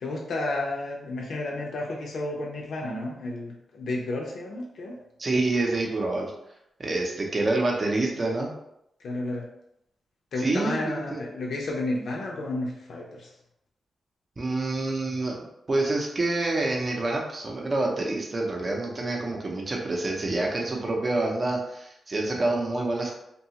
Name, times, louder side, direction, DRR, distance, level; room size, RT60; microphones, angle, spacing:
voice 1, 0.0-5.0 9.0-9.5 10.3-13.3, left 2 dB, 75° left, -2 dB, 0.5 m, -31 dB
voice 2, 5.2-6.3 6.8-8.5 10.4-11.2 14.4-23.1, right 2 dB, 35° right, -1 dB, 0.6 m, -27 dB
2.7 x 2.3 x 2.8 m, 0.79 s
cardioid pair, 105°, 0 cm